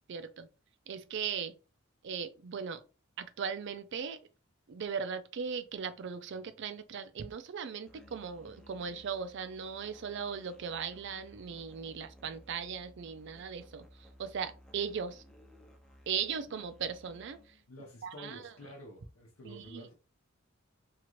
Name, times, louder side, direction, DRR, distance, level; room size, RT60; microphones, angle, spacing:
voice 1, 0.1-0.5 0.9-1.5 2.0-2.8 3.2-4.2 4.7-15.2 16.1-17.4 18.0-18.5 19.4-19.9, right 6 dB, 60° right, 0.4 m, -38 dB
Musical instrument, 7.9-17.7, equal, 5° left, 0.4 m, -58 dB
voice 2, 17.7-19.9, equal, 85° left, 0.7 m, -49 dB
2.9 x 2.5 x 3.0 m
head